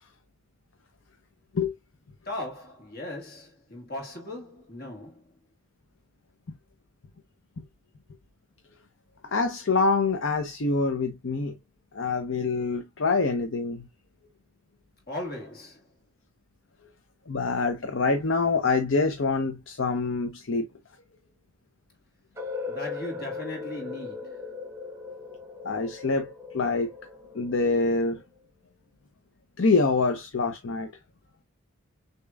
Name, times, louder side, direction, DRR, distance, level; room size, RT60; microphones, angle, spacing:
voice 1, 2.3-5.3 15.1-15.9 22.7-24.5, left 1 dB, 45° left, 2.0 m, -38 dB
voice 2, 9.2-11.6 11.9-13.9 17.3-20.7 25.6-26.9 27.3-28.2 29.6-30.9, left 3 dB, 60° left, 0.6 m, -25 dB
sound 1, 22.4-28.2, left 4 dB, 10° right, 1.1 m, -38 dB
6.5 x 2.9 x 2.3 m
head